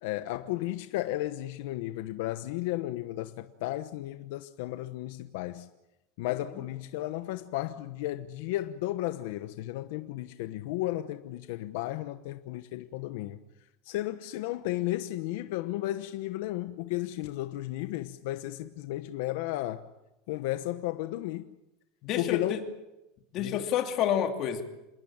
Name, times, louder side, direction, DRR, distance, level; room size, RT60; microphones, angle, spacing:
voice 1, 0.0-5.7 6.2-13.4 13.9-19.9 20.3-21.5 22.2-22.6 23.4-23.6, left 16 dB, 65° left, 1.0 m, -34 dB
voice 2, 22.0-22.6 23.3-24.6, left 9 dB, 35° left, 2.8 m, -29 dB
27.5 x 21.0 x 8.8 m
supercardioid pair, 170°, 0 cm